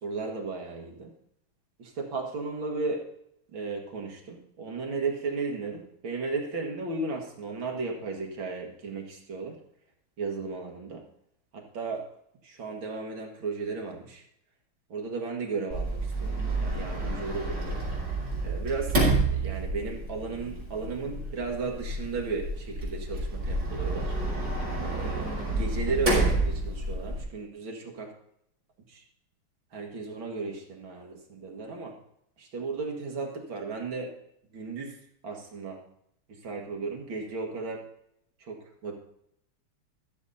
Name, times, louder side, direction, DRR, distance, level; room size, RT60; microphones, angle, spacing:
voice 1, 0.0-1.1 1.8-3.1 3.5-9.6 10.2-11.1 11.5-12.1 12.4-14.2 14.9-18.1 18.4-19.0 19.3-24.2 24.8-28.1 28.9-29.0 29.7-32.0 32.4-34.2 34.5-35.8 36.3-37.9 38.4-39.0, right 4 dB, 65° right, 1 dB, 2.4 m, -35 dB
Sliding door, 15.7-27.2, right 2 dB, 35° right, 4.8 m, -29 dB
13.5 x 7.2 x 4.1 m, 0.75 s
omnidirectional pair, 2.4 m